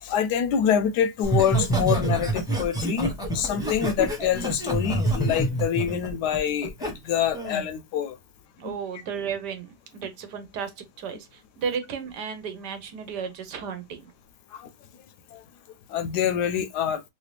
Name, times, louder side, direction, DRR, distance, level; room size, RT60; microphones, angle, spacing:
voice 1, 0.0-8.2 8.6-8.7 14.5-14.7 15.3-15.4 15.9-17.0, left 8 dB, 75° left, 1.1 m, -26 dB
Laughter, 1.2-6.9 7.3-7.6, right 1 dB, 5° right, 0.8 m, -27 dB
voice 2, 8.6-14.1, right 6 dB, 75° right, 1.4 m, -34 dB
3.2 x 2.7 x 3.2 m
omnidirectional pair, 1.8 m